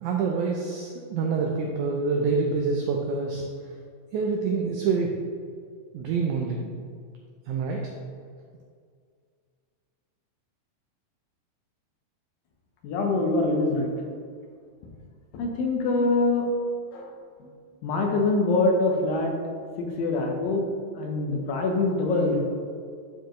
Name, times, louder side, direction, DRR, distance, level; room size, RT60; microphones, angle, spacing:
voice 1, 0.0-3.5 4.1-5.2 5.9-6.7 7.5-7.9, right 4 dB, 85° right, 1 dB, 1.7 m, -26 dB
voice 2, 12.8-13.9 15.3-16.5 16.9-17.1 17.4-17.5 17.8-19.4 19.8-20.7 21.0-22.4, left 2 dB, 75° left, 1 dB, 2.7 m, -24 dB
11.0 x 4.6 x 3.1 m, 2.1 s
omnidirectional pair, 4.1 m